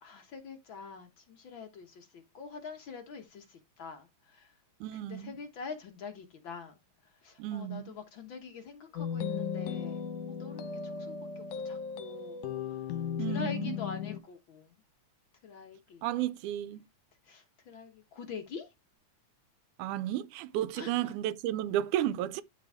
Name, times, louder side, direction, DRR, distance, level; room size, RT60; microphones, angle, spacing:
voice 1, 0.0-3.4 3.8-4.1 5.0-6.7 7.2-10.0 10.4-10.7 11.1-11.2 11.6-12.4 13.2-14.7 15.4-16.0 17.3-18.7 20.7-20.9, left 5 dB, 60° left, 1.3 m, -44 dB
voice 2, 4.8-5.4 7.4-8.0 13.2-13.8 16.0-16.8 19.8-22.4, right 12 dB, 85° right, 2.1 m, -33 dB
sound 1, 9.0-14.2, left 7 dB, 80° left, 2.4 m, -36 dB
12.0 x 3.9 x 3.4 m
omnidirectional pair, 3.5 m